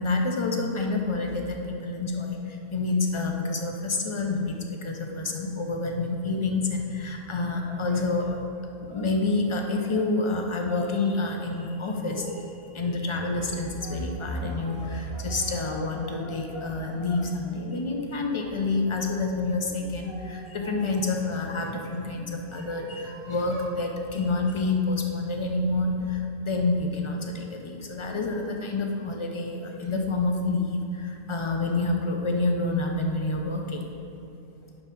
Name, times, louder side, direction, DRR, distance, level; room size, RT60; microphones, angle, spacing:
voice 1, 0.0-8.4 8.8-12.4 12.7-33.9, left 3 dB, 35° left, 2 dB, 0.6 m, -28 dB
sound 1, 12.1-12.5 13.0-17.0 17.4-19.0 19.7-21.3 22.1-23.8, right 3 dB, 80° right, 1.2 m, -46 dB
9.7 x 3.5 x 5.9 m, 2.7 s
omnidirectional pair, 1.1 m